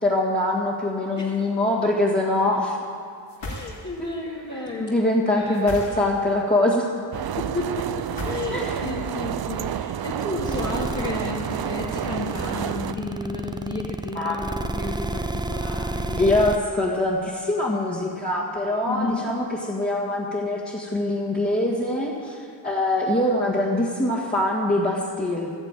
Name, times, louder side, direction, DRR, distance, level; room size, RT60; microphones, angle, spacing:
voice 1, 0.0-2.8 4.1-4.2 4.8-6.9 8.5-8.9 14.1-14.4 16.2-25.5, left 1 dB, 20° left, -6 dB, 2.0 m, -23 dB
sound 1, 3.3-4.1 5.5-6.4 8.0-8.9, left 1 dB, 60° left, 3.0 m, -35 dB
voice 2, 3.4-5.0 5.3-5.8 7.4-16.4 18.9-19.2, left 2 dB, 40° left, -6 dB, 2.3 m, -32 dB
sound 2, 7.1-12.9, right 9 dB, 55° right, 0.6 m, -30 dB
sound 3, 10.5-16.6, right 2 dB, 10° right, 0.5 m, -30 dB
13.5 x 9.9 x 9.0 m, 2.3 s
wide cardioid pair, 105°, 45 cm